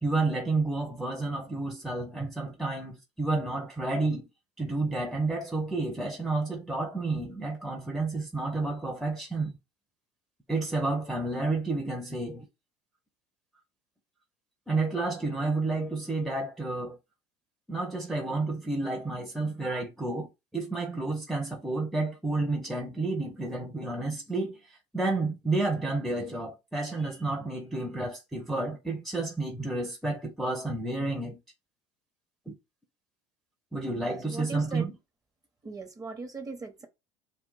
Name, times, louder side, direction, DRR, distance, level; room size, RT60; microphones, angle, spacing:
voice 1, 0.0-4.3 4.6-9.5 10.5-12.5 14.7-17.0 17.7-24.6 24.9-31.4 32.5-32.6 33.7-34.9, right 3 dB, ahead, 0.7 m, -30 dB
voice 2, 34.0-34.9 35.6-36.9, right 3 dB, 25° right, 0.9 m, -39 dB
2.2 x 2.2 x 3.9 m
supercardioid pair, 90°, 15 cm